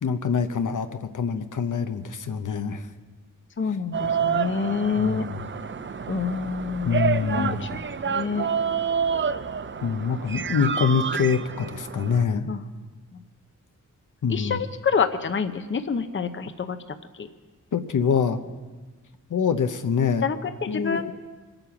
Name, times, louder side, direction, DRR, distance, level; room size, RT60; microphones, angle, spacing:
voice 1, 0.0-2.9 5.0-5.4 6.8-7.6 9.8-12.5 14.2-14.6 17.7-18.4 19.3-20.2 20.7-21.1, left 6 dB, 65° left, 8 dB, 0.9 m, -25 dB
voice 2, 3.6-5.2 6.1-8.5 12.5-12.6 14.3-16.8 17.1-17.3 20.2-21.1, left 5 dB, 35° left, 9 dB, 0.7 m, -27 dB
sound 1, 3.9-12.2, right 6 dB, 35° right, 0.5 m, -28 dB
24.0 x 9.0 x 5.9 m, 1.3 s
wide cardioid pair, 105°, 33 cm